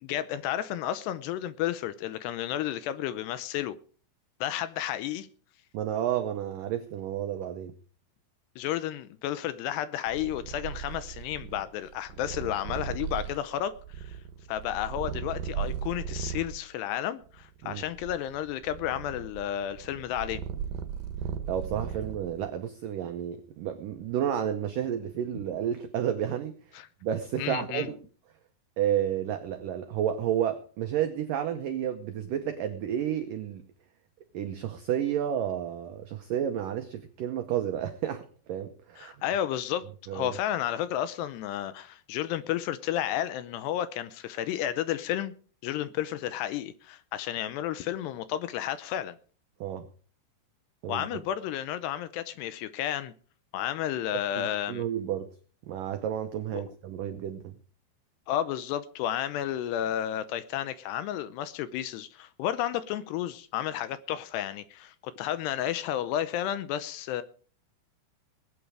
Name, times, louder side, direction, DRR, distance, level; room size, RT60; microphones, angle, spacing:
voice 1, 0.0-3.8 4.4-5.3 8.6-14.2 14.5-20.4 26.7-26.9 27.4-27.9 39.0-39.9 40.1-45.3 45.6-49.2 50.9-53.1 53.5-54.9 56.5-56.6 58.3-67.2, left 11 dB, 80° left, 2.6 m, -32 dB
voice 2, 5.7-7.7 17.6-17.8 21.5-26.5 27.0-28.0 28.8-33.6 34.3-39.2 40.1-40.4 49.6-49.9 50.8-51.1 54.1-55.3 55.7-57.5, right 10 dB, 85° right, 1.9 m, -31 dB
Purr, 10.1-16.6 17.3-22.5, right 8 dB, 70° right, 2.4 m, -37 dB
20.5 x 9.3 x 4.8 m
omnidirectional pair, 5.2 m